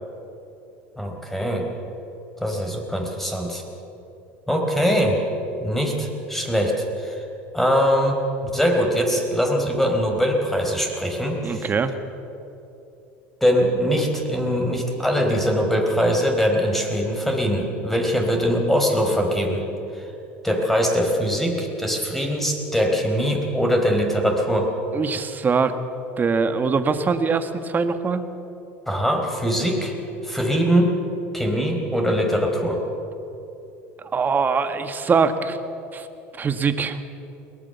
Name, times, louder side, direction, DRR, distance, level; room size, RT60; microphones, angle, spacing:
voice 1, 1.0-1.7 2.4-3.6 4.5-5.2 5.6-7.2 7.5-8.2 8.5-11.7 13.4-19.6 19.9-20.1 20.4-24.7 28.9-29.9 30.2-30.9 31.3-32.8, equal, 5° left, 2 dB, 4.5 m, -22 dB
voice 2, 11.4-11.9 24.9-25.8 26.2-28.2 34.1-35.6 35.9-36.1 36.3-37.0, right 5 dB, 30° right, 9 dB, 1.6 m, -22 dB
22.0 x 19.0 x 7.0 m, 2.9 s
supercardioid pair, 95°, 7 cm